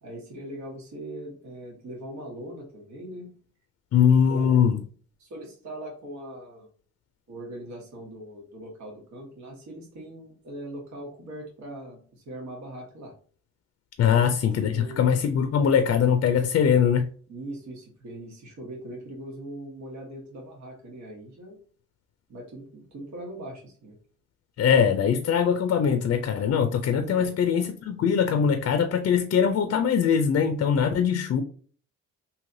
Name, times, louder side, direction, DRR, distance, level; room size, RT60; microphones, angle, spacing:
voice 1, 0.0-3.3 4.3-4.7 5.2-6.7 7.3-13.1 14.0-14.2 14.6-15.0 17.3-21.6 22.3-23.9 27.1-27.3, right 1 dB, 65° right, -2 dB, 1.2 m, -40 dB
voice 2, 3.9-4.8 14.0-17.0 24.6-31.4, left 7 dB, 50° left, 6 dB, 0.5 m, -22 dB
3.2 x 2.8 x 2.6 m, 0.44 s
cardioid pair, 90°, 30 cm